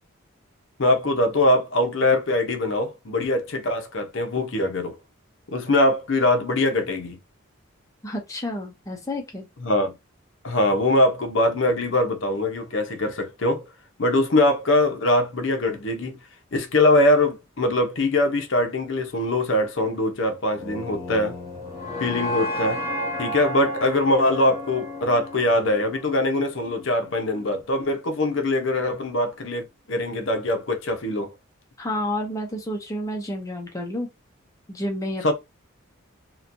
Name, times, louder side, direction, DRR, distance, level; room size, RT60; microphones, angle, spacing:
voice 1, 0.8-5.0 5.5-7.2 9.6-9.9 10.4-13.6 14.0-16.2 16.5-21.4 22.0-22.8 23.2-31.3 35.2-35.3, left 1 dB, 60° left, 0.6 m, -22 dB
voice 2, 8.0-9.5 31.8-34.1 34.7-35.3, left 1 dB, 15° left, 0.5 m, -30 dB
sound 1, 20.5-26.6, left 1 dB, 15° right, 1.0 m, -32 dB
2.9 x 2.2 x 2.5 m
head